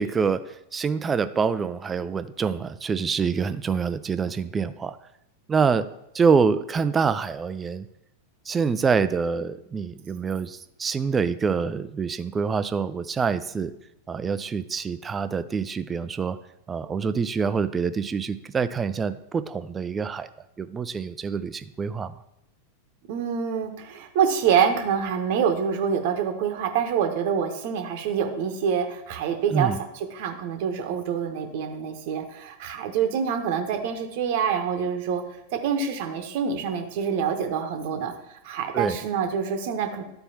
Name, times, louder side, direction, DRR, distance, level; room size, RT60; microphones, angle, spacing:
voice 1, 0.0-5.0 5.5-5.9 6.1-7.9 8.5-13.7 14.1-16.4 16.7-20.3 20.6-22.2 29.5-29.8 38.7-39.0, right 5 dB, 20° right, 12 dB, 0.4 m, -26 dB
voice 2, 23.1-29.7 30.1-35.2 35.5-38.1 38.4-40.0, right 7 dB, 50° right, 6 dB, 1.0 m, -26 dB
12.5 x 4.4 x 2.8 m, 0.86 s
figure-of-eight pair, 90°, 0 cm